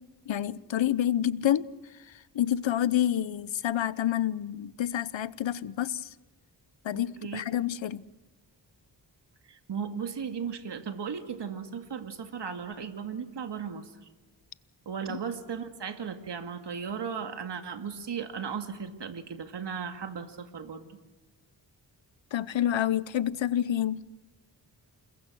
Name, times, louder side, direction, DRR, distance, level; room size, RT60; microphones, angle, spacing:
voice 1, 0.3-1.7 2.3-6.1 6.8-8.0 15.1-15.2 22.3-24.0, left 11 dB, 80° left, 1.0 m, -28 dB
voice 2, 6.9-7.4 9.4-14.1 14.9-21.0, right 6 dB, 65° right, 2.3 m, -36 dB
28.5 x 21.5 x 6.3 m
cardioid pair, 80°, 45 cm